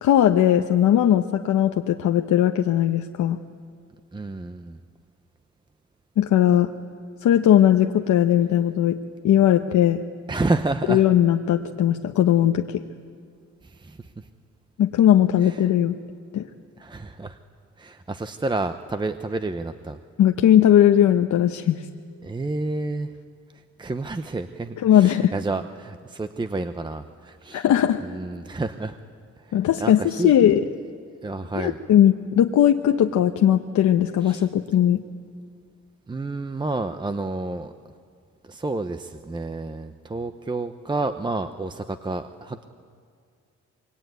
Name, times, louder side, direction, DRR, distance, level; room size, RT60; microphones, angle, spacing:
voice 1, 0.0-3.4 6.2-6.7 7.2-9.0 9.2-10.0 10.9-12.8 14.8-16.0 16.3-16.4 20.2-21.9 24.8-25.3 27.5-28.0 29.5-30.6 31.6-35.0, left 11 dB, 75° left, 5 dB, 1.0 m, -18 dB
voice 2, 4.1-4.8 10.3-11.1 13.6-14.3 15.4-15.6 16.8-17.4 17.8-20.0 22.2-23.1 23.5-27.7 28.0-29.0 29.4-30.4 31.2-31.8 34.2-34.5 36.1-37.7 38.4-42.6, right 2 dB, 15° right, 9 dB, 0.7 m, -30 dB
26.5 x 23.0 x 9.3 m, 2.2 s
cardioid pair, 130°, 30 cm